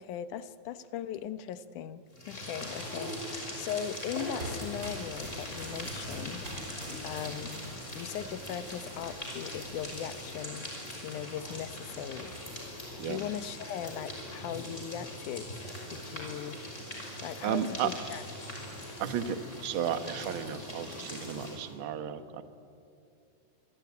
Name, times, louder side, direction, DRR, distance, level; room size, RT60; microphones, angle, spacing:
voice 1, 0.0-7.7 8.0-10.7 11.0-12.3 12.6-12.7 13.0-15.5 15.9-16.6 17.2-18.3, left 9 dB, 80° left, 13 dB, 2.4 m, -39 dB
sound 1, 2.1-21.7, left 1 dB, 20° left, 6.0 m, -41 dB
sound 2, 3.9-10.4, equal, 25° right, 5.2 m, -45 dB
voice 2, 17.4-17.9 19.0-22.5, right 9 dB, 55° right, 10 dB, 1.7 m, -33 dB
26.5 x 24.0 x 9.5 m, 2.6 s
omnidirectional pair, 3.5 m